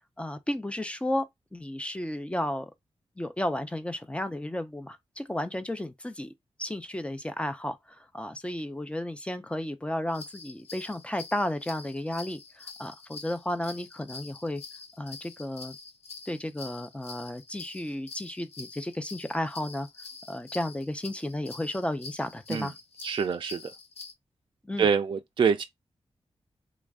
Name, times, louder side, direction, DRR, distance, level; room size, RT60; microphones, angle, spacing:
voice 1, 0.2-1.3 1.5-2.7 3.2-6.3 6.6-14.6 15.0-15.8 16.3-19.9 20.3-22.7 24.6-24.9, left 1 dB, 10° left, 0.4 m, -33 dB
sound 1, 10.1-24.1, left 4 dB, 70° left, 0.6 m, -46 dB
voice 2, 23.0-23.7 24.8-25.6, right 6 dB, 50° right, 0.4 m, -25 dB
3.1 x 2.4 x 3.5 m
wide cardioid pair, 135°, 11 cm